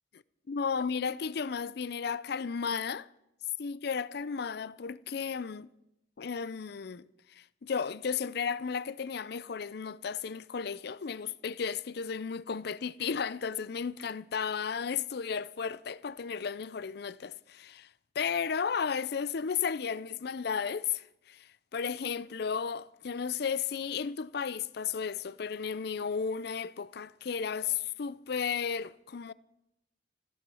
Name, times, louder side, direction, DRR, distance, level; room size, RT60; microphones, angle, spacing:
voice 1, 0.5-3.1 3.6-5.7 6.2-17.9 18.2-29.3, left 6 dB, 55° left, 0.5 m, -34 dB
15.0 x 12.0 x 6.2 m
head